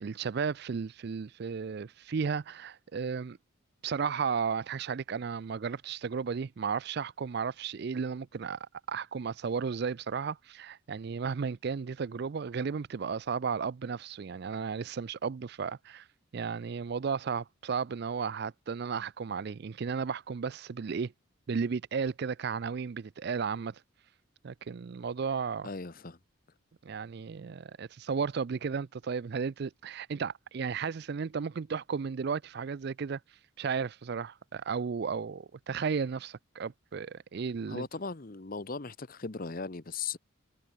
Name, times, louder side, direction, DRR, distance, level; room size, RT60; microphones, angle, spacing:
voice 1, 0.0-3.4 3.8-16.0 16.3-21.1 21.5-23.8 24.4-25.7 26.8-33.2 33.6-37.9, right 5 dB, 50° right, 0.4 m, -34 dB
voice 2, 25.6-26.2 37.7-40.2, left 4 dB, 40° left, 1.0 m, -38 dB
head